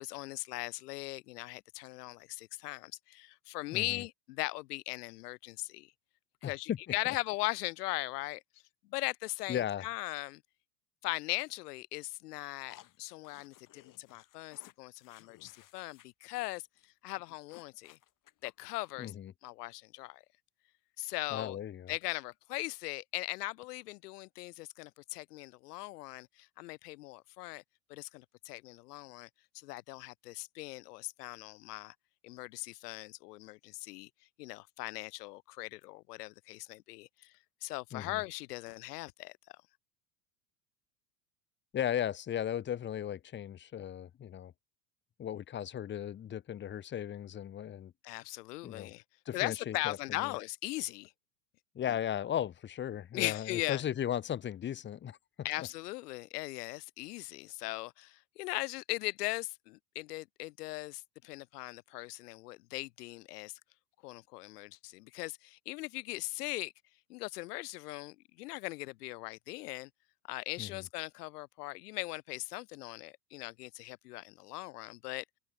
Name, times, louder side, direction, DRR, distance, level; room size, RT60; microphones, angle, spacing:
voice 1, 0.0-5.9 6.4-8.4 8.8-10.4 11.0-16.6 17.0-18.0 18.4-19.1 19.4-20.2 21.0-21.6 21.9-27.6 27.9-29.3 29.5-31.9 32.2-34.1 34.4-37.3 37.6-39.3 48.0-49.0 49.3-51.1 53.1-53.8 55.4-63.6 64.0-66.7 67.1-69.9 70.3-75.2, left 20 dB, 75° left, 0.7 m, -39 dB
voice 2, 3.7-4.0 6.4-6.8 9.5-9.9 19.0-19.3 21.3-21.9 37.9-38.2 41.7-44.5 45.2-47.9 48.6-48.9 49.3-50.4 51.7-55.2 55.6-55.7 70.6-70.8, left 10 dB, 25° left, 1.0 m, -36 dB
sound 1, 12.7-16.1 16.3-16.5 16.8-16.9 17.2-19.1, left 14 dB, 40° left, 5.5 m, -59 dB
hypercardioid pair, 105°, 47 cm